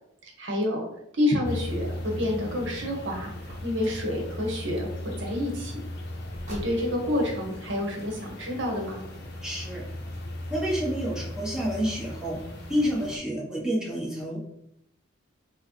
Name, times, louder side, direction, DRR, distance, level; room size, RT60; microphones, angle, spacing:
voice 1, 0.2-0.8 1.1-3.3 3.6-5.8 6.5-9.0, left 1 dB, 60° right, 0 dB, 0.9 m, -28 dB
sound 1, 1.4-13.2, left 1 dB, 55° left, 0.6 m, -37 dB
Car, 3.4-4.1 6.3-7.1, equal, 35° right, 1.1 m, -43 dB
voice 2, 9.4-9.8 10.5-12.4 12.7-14.4, equal, 5° right, -5 dB, 0.8 m, -29 dB
4.4 x 2.1 x 3.0 m, 0.76 s
head